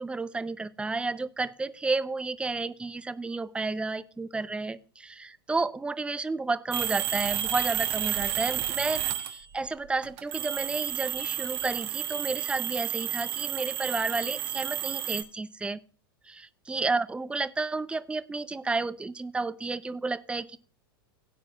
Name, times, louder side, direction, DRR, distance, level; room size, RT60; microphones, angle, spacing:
voice 1, 0.0-15.8 16.2-20.6, right 3 dB, 10° right, 15 dB, 0.6 m, -31 dB
alarm clock, 6.7-9.5 10.0-15.2, right 11 dB, 55° right, 1.3 m, -31 dB
17.0 x 9.4 x 2.4 m, 0.39 s
figure-of-eight pair, 90°, 12 cm